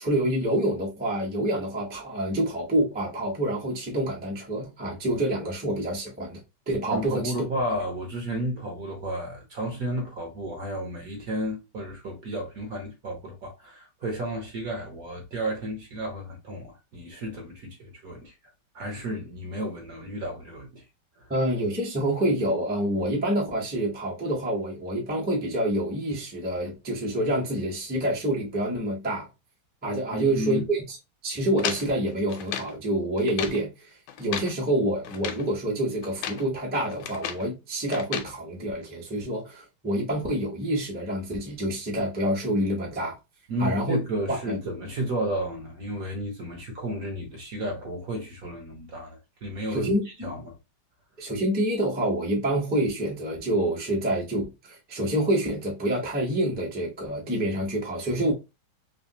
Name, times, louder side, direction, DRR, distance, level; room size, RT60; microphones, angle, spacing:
voice 1, 0.0-7.3 21.3-29.3 29.8-31.0 31.2-43.2 43.6-44.0 44.3-44.6 49.7-50.3 51.2-58.3, right 1 dB, 10° right, 0.4 m, -27 dB
voice 2, 6.9-18.3 18.7-20.8 21.2-21.3 30.1-30.6 43.5-49.9 50.2-50.6, right 1 dB, 60° right, 1.0 m, -32 dB
sound 1, 31.6-32.8 33.2-33.6 34.1-34.6 35.0-35.5 36.0-36.5 36.8-37.5 37.9-38.3, left 9 dB, 85° left, 1.5 m, -34 dB
3.4 x 2.8 x 2.8 m
omnidirectional pair, 2.2 m